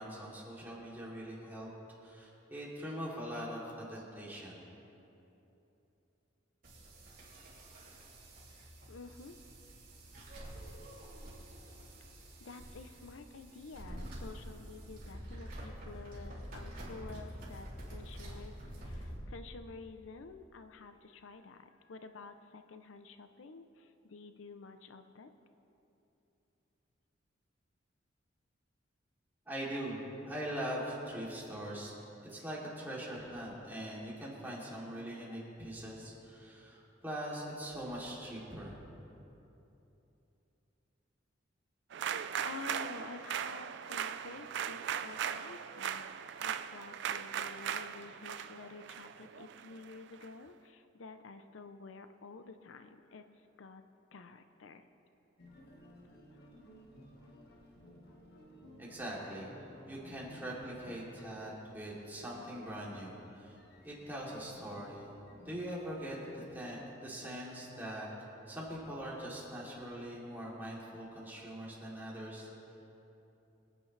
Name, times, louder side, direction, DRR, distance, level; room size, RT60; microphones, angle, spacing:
voice 1, 0.0-1.7 2.0-4.6 29.5-30.0 30.3-31.9 32.3-38.8 58.8-59.5 59.9-63.6 63.8-65.1 65.4-68.1 68.5-72.5, equal, 10° right, -6 dB, 2.8 m, -42 dB
sound 1, 6.6-19.2, right 1 dB, 45° right, 3.4 m, -47 dB
voice 2, 8.5-9.4 12.4-25.3 42.4-53.2 53.6-53.8 54.1-54.9 56.0-56.1, left 4 dB, 80° left, 9 dB, 0.6 m, -50 dB
sound 2, 41.9-50.3, right 8 dB, 60° right, 0.4 m, -39 dB
sound 3, 55.4-66.5, left 1 dB, 55° left, 1.5 m, -57 dB
25.0 x 9.1 x 3.2 m, 2.9 s
head